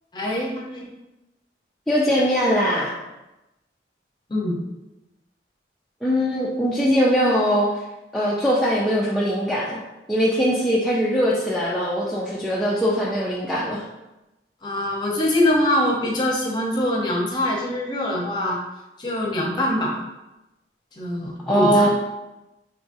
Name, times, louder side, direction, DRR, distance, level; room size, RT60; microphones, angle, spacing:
voice 1, 0.1-0.9 4.3-4.6 14.6-18.6 19.0-20.0 21.0-21.9, left 1 dB, 25° left, -3 dB, 0.8 m, -23 dB
voice 2, 1.9-2.9 6.0-7.8 8.1-9.8 10.1-13.8 21.5-21.9, equal, ahead, -7 dB, 0.4 m, -21 dB
5.0 x 3.0 x 2.6 m, 0.99 s
head